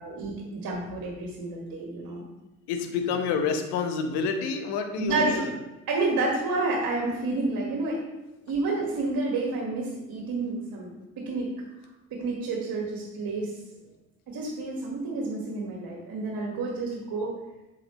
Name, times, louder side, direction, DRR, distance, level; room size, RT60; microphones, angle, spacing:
voice 1, 0.0-2.2 5.0-5.4 5.9-8.0 8.5-11.5 12.1-13.5 14.3-17.3, right 3 dB, 50° right, -1 dB, 1.8 m, -29 dB
voice 2, 2.7-5.6 8.4-8.5, left 5 dB, 65° left, 6 dB, 1.1 m, -29 dB
7.9 x 5.6 x 3.1 m, 1.0 s
hypercardioid pair, 50°, 43 cm